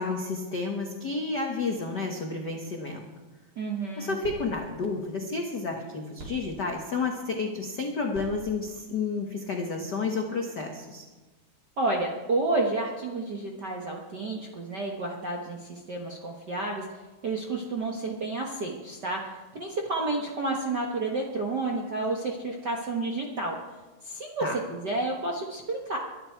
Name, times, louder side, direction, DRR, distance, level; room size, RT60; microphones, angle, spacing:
voice 1, 0.0-3.0 4.0-11.0 24.4-24.6, left 4 dB, 60° left, 2 dB, 1.0 m, -31 dB
voice 2, 3.6-4.2 11.8-16.8 17.2-23.5 24.0-26.0, right 2 dB, 55° right, -1 dB, 1.2 m, -30 dB
sound 1, 3.7-10.1, right 2 dB, 30° right, 3.8 m, -49 dB
22.5 x 11.0 x 4.6 m, 1.2 s
omnidirectional pair, 3.9 m